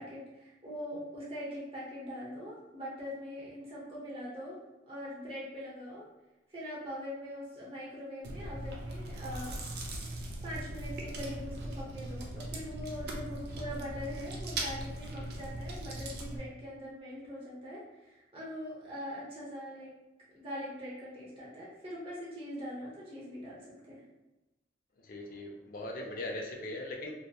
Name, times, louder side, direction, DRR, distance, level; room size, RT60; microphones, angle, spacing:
voice 1, 0.0-6.0 6.5-10.0 10.4-19.9 20.3-24.0, equal, 30° right, -7 dB, 0.8 m, -42 dB
Chewing mastication, 8.2-16.4, right 1 dB, 55° right, 0.4 m, -39 dB
voice 2, 25.0-27.1, left 2 dB, 45° left, 1 dB, 0.4 m, -39 dB
2.7 x 2.1 x 2.2 m, 1.0 s
head